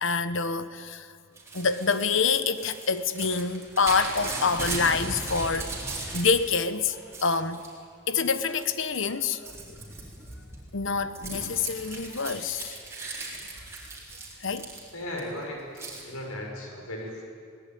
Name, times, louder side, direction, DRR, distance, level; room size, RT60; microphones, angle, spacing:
voice 1, 0.0-1.1 1.5-5.7 6.1-7.6 8.1-9.5 10.7-12.8 14.4-14.7, left 5 dB, 60° left, 0.9 m, -26 dB
Crumpling crinkling / Tearing, 1.4-6.6 6.9-7.7 8.2-8.7 8.9-15.2 15.8-16.0, right 2 dB, 15° right, 3.7 m, -37 dB
voice 2, 14.9-17.2, left 1 dB, 85° left, 5.9 m, -36 dB
21.0 x 18.5 x 9.2 m
head